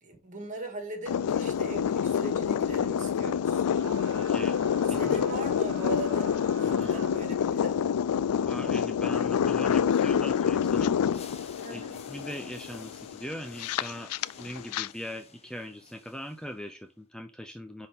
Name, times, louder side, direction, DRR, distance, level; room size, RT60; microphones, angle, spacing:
voice 1, 0.0-3.7 4.9-7.8 11.6-12.0, right 3 dB, 35° right, 2.1 m, -39 dB
sound 1, 1.1-14.9, left 8 dB, 80° left, 0.4 m, -27 dB
Screaming, 3.7-7.5, right 5 dB, 60° right, 1.4 m, -47 dB
voice 2, 4.1-4.6 4.9-5.2 6.6-7.0 8.4-11.0 11.7-14.1 14.4-17.9, equal, 5° left, 0.5 m, -40 dB
sound 2, 10.6-16.9, left 5 dB, 30° left, 0.9 m, -53 dB
10.0 x 4.0 x 3.6 m
head